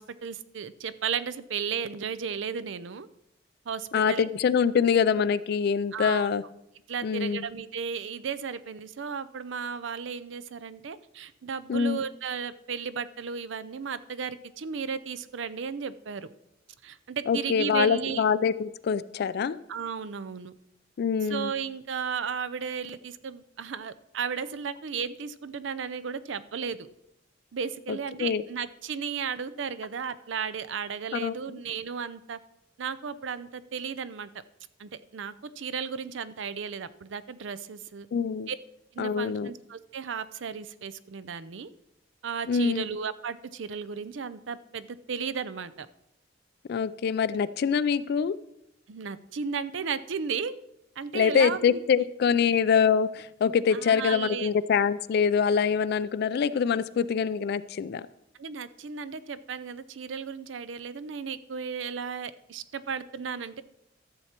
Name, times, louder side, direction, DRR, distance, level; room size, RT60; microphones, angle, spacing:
voice 1, 0.0-3.1 3.7-4.3 5.9-6.4 6.9-16.3 16.8-18.2 19.7-20.5 21.2-26.9 27.5-32.4 32.8-34.3 34.8-38.1 38.5-38.6 38.9-41.7 42.2-45.9 48.9-50.6 51.0-51.8 52.4-52.6 53.7-54.5 58.4-63.6, right 6 dB, 70° right, 15 dB, 0.5 m, -34 dB
voice 2, 3.9-6.4 7.0-7.5 11.7-12.0 17.3-19.6 21.0-21.5 28.2-28.4 31.1-31.3 38.1-38.5 39.0-39.5 42.5-42.9 46.7-48.4 51.1-58.1, left 6 dB, 55° left, 15 dB, 0.3 m, -25 dB
13.0 x 7.1 x 4.4 m, 0.82 s
head